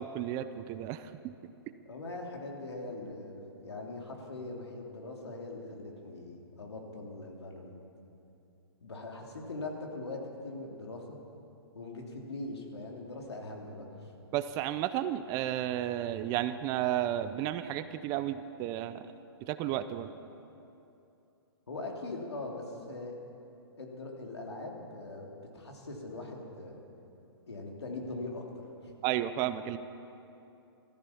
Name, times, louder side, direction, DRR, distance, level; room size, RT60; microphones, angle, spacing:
voice 1, 0.0-1.3 14.3-19.1 19.4-20.1 29.0-29.8, right 12 dB, 25° right, 12 dB, 0.5 m, -33 dB
voice 2, 1.8-7.8 8.8-11.2 11.7-14.1 21.7-23.1 23.8-26.8 27.5-28.9, left 2 dB, 90° left, 0 dB, 3.0 m, -41 dB
14.5 x 14.0 x 7.1 m, 2.8 s
hypercardioid pair, 140°, 13 cm